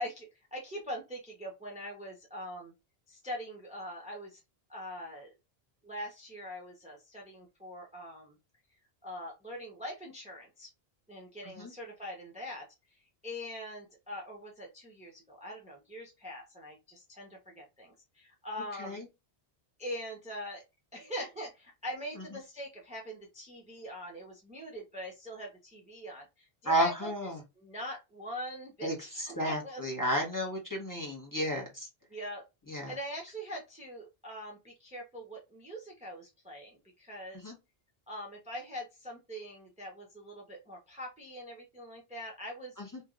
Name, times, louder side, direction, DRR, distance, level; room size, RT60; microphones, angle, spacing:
voice 1, 0.0-2.7 3.1-4.4 4.7-5.3 5.8-8.4 9.0-10.7 11.1-12.7 13.2-19.0 19.8-20.6 20.9-27.1 27.6-29.8 32.1-32.4 32.9-37.4 38.1-42.8, equal, 5° right, -1 dB, 0.9 m, -42 dB
voice 2, 26.6-27.4 28.8-31.9 32.7-32.9 37.3-37.5 42.8-43.0, equal, 20° left, -1 dB, 1.2 m, -32 dB
3.6 x 2.9 x 2.5 m, 0.23 s
omnidirectional pair, 1.1 m